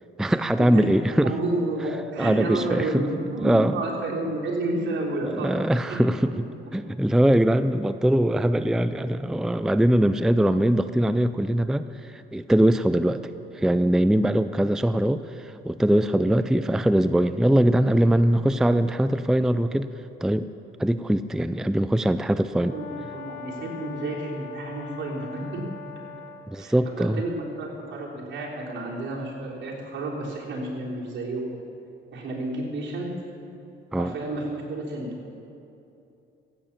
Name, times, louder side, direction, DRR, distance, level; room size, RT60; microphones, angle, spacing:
voice 1, 0.2-1.3 2.2-3.0 3.4-3.8 5.2-6.5 6.7-13.2 13.5-19.9 20.2-20.5 20.8-22.8 26.5-27.2 33.9-34.1, right 1 dB, 5° right, 12 dB, 0.4 m, -22 dB
voice 2, 1.2-5.5 5.9-6.0 22.6-25.6 26.6-31.5 32.1-33.1 33.9-35.1, right 2 dB, 70° right, -3 dB, 3.5 m, -30 dB
Brass instrument, 22.6-26.5, left 6 dB, 75° left, 2.0 m, -41 dB
15.5 x 8.8 x 7.2 m, 2.7 s
cardioid pair, 90°, 20 cm